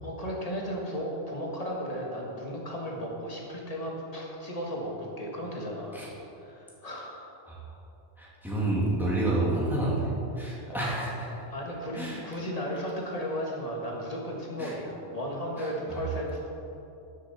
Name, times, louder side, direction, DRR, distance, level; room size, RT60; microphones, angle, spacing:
voice 1, 0.0-6.0 6.3-7.3 10.7-10.9 11.5-16.5, equal, 30° left, -2 dB, 1.7 m, -35 dB
voice 2, 8.2-11.3 11.9-12.2 14.6-14.7 15.6-16.0, right 2 dB, ahead, -6 dB, 2.1 m, -29 dB
13.0 x 7.4 x 4.3 m, 2.9 s
omnidirectional pair, 1.3 m